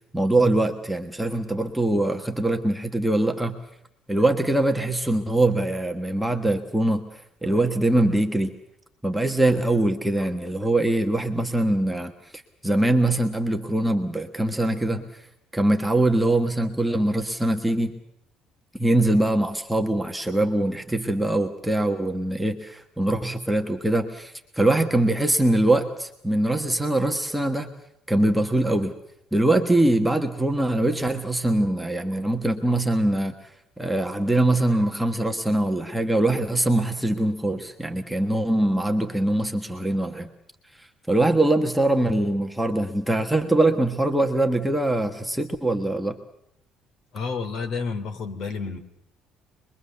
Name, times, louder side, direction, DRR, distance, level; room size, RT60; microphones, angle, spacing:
voice 1, 0.1-3.6 4.1-7.0 7.4-8.5 9.0-12.1 12.6-15.0 15.5-17.9 18.7-27.7 28.1-28.9 29.3-33.3 33.8-40.3 41.1-46.2, right 1 dB, 5° right, 3 dB, 1.3 m, -23 dB
voice 2, 47.1-48.8, left 5 dB, 45° left, 9 dB, 3.0 m, -30 dB
25.5 x 22.5 x 6.9 m, 0.78 s
cardioid pair, 175°, 0 cm